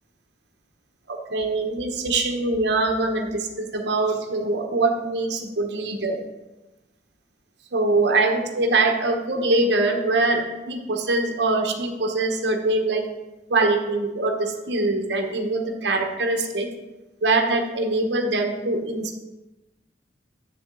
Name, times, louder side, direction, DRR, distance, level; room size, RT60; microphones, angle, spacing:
voice 1, 1.1-6.2 7.7-13.1 13.5-16.7 17.2-19.2, right 2 dB, 65° right, 3 dB, 0.9 m, -23 dB
7.7 x 7.0 x 3.7 m, 1.0 s
head